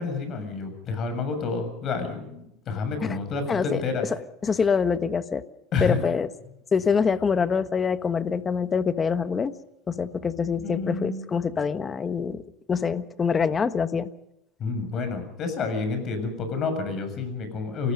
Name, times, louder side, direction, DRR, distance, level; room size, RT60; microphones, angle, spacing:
voice 1, 0.0-4.1 5.7-6.0 10.6-11.3 14.6-17.9, left 4 dB, 40° left, 8 dB, 7.2 m, -29 dB
voice 2, 3.5-3.8 4.4-5.4 5.8-6.3 6.7-9.5 9.9-12.4 12.7-14.1, left 6 dB, 20° left, 11 dB, 1.3 m, -25 dB
29.0 x 19.0 x 5.4 m, 0.81 s
supercardioid pair, 135°, 0 cm